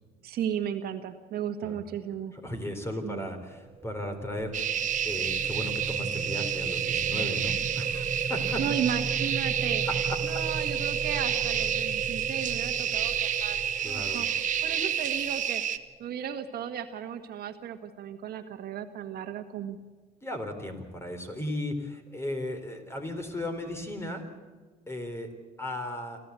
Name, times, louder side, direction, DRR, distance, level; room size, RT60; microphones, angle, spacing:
voice 1, 0.2-2.3 3.0-3.3 8.6-9.8 10.2-13.6 13.8-19.8, right 9 dB, 65° right, 7 dB, 1.7 m, -35 dB
voice 2, 2.3-8.6 9.9-10.2 11.2-11.4 13.8-14.2 20.2-24.2 24.9-25.3 25.6-26.2, left 1 dB, 15° left, 6 dB, 3.8 m, -36 dB
sound 1, 3.5-15.7, right 5 dB, 30° right, 0.9 m, -36 dB
sound 2, 4.5-15.8, right 9 dB, 50° right, 1.2 m, -30 dB
26.0 x 14.5 x 8.3 m, 1.4 s
cardioid pair, 110°, 17 cm